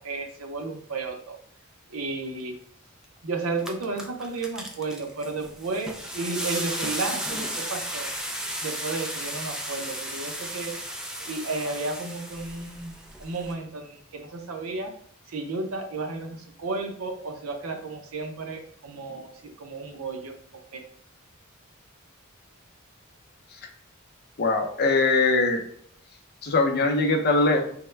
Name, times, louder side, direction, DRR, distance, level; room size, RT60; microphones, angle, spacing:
voice 1, 0.0-1.4 1.9-2.5 3.2-8.1 8.6-10.7 11.3-14.9 15.3-19.3 19.6-20.3 20.7-20.8, right 3 dB, 80° right, 3 dB, 0.7 m, -33 dB
sound 1, 3.0-3.1 3.5-13.5, equal, 5° right, 0.4 m, -34 dB
voice 2, 24.4-25.6 26.4-27.6, left 3 dB, 50° left, 4 dB, 0.6 m, -21 dB
3.5 x 2.1 x 3.2 m, 0.63 s
head